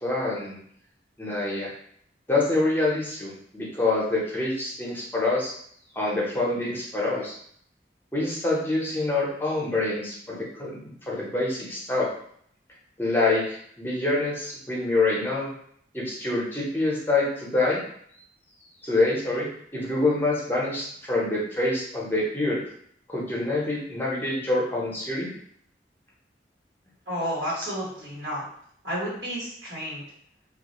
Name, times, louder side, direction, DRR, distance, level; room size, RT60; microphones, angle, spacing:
voice 1, 0.0-0.6 1.2-1.7 2.3-5.5 6.0-7.3 8.1-12.1 13.0-15.5 15.9-17.8 18.8-19.5 19.7-22.6 23.1-25.3, left 2 dB, 10° left, -5 dB, 0.6 m, -26 dB
voice 2, 27.1-28.4 28.8-30.0, equal, 85° right, -8 dB, 1.2 m, -31 dB
2.3 x 2.0 x 2.9 m, 0.65 s
head